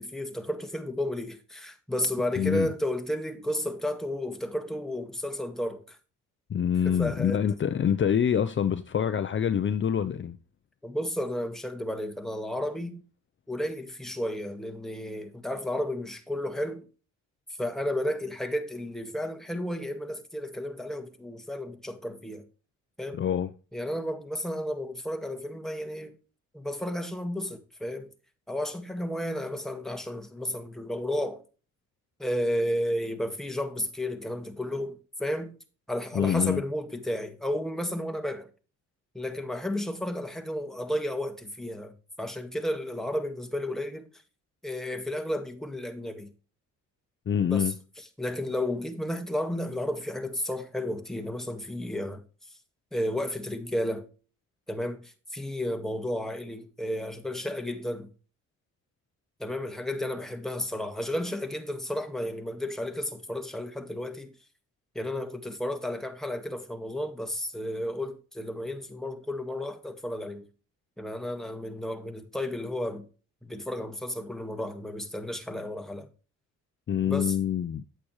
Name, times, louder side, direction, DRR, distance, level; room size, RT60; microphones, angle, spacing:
voice 1, 0.0-6.0 6.9-7.4 10.8-13.0 13.5-16.9 17.6-22.4 23.0-23.2 23.7-26.1 26.5-28.1 28.5-31.4 32.2-35.5 35.9-38.5 39.1-44.1 44.6-46.3 47.4-47.7 48.2-52.2 52.9-54.1 54.7-55.0 55.3-58.1 59.4-64.3 65.0-70.5 71.0-73.1 73.4-76.1 77.1-77.4, left 1 dB, ahead, 1.7 m, -32 dB
voice 2, 2.4-2.7 6.5-10.4 23.1-23.5 36.1-36.6 47.3-47.7 76.9-77.8, left 8 dB, 40° left, 0.7 m, -26 dB
8.8 x 8.4 x 3.2 m
cardioid pair, 90°, 30 cm